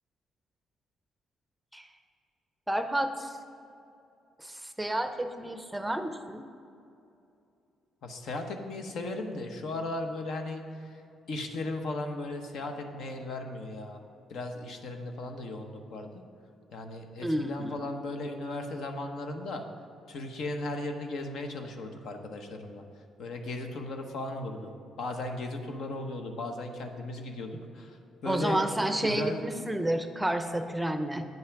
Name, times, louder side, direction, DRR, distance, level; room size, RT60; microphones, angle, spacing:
voice 1, 2.7-3.4 4.4-6.5 17.2-17.8 28.3-31.3, right 1 dB, 10° right, 8 dB, 0.6 m, -30 dB
voice 2, 8.0-11.0 11.3-14.0 14.3-16.2 16.7-19.6 20.1-22.8 23.2-28.6 29.0-29.4, left 2 dB, 70° left, 5 dB, 0.9 m, -36 dB
9.1 x 5.6 x 5.8 m, 2.6 s
cardioid pair, 90°, 0 cm